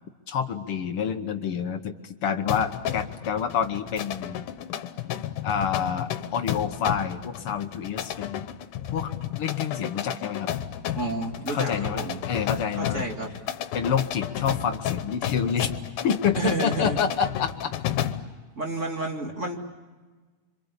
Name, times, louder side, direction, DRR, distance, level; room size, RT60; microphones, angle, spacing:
voice 1, 0.3-4.4 5.4-8.4 8.9-9.1 9.4-10.5 11.5-13.0 13.7-15.7 16.0-17.7, left 7 dB, 60° left, 8 dB, 1.5 m, -28 dB
sound 1, 2.5-18.3, left 10 dB, 90° left, 2.5 m, -32 dB
voice 2, 10.9-12.2 12.8-13.3 16.4-17.0 18.6-19.6, right 2 dB, 25° right, 1 dB, 2.3 m, -30 dB
27.0 x 25.5 x 8.3 m, 1.3 s
omnidirectional pair, 3.5 m